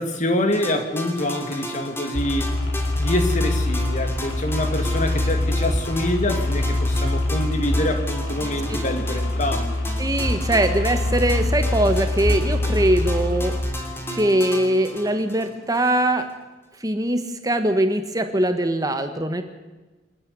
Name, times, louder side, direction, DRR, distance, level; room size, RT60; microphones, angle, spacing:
voice 1, 0.0-2.5 3.0-9.9, left 1 dB, 40° left, 6 dB, 2.4 m, -26 dB
sound 1, 0.5-15.9, left 1 dB, 15° left, 2.9 m, -34 dB
sound 2, 2.1-13.6, left 1 dB, 80° left, 4.6 m, -24 dB
voice 2, 10.0-13.5 14.2-16.3 16.8-19.4, right 1 dB, 20° right, 7 dB, 1.3 m, -22 dB
27.5 x 9.6 x 9.7 m, 1.2 s
head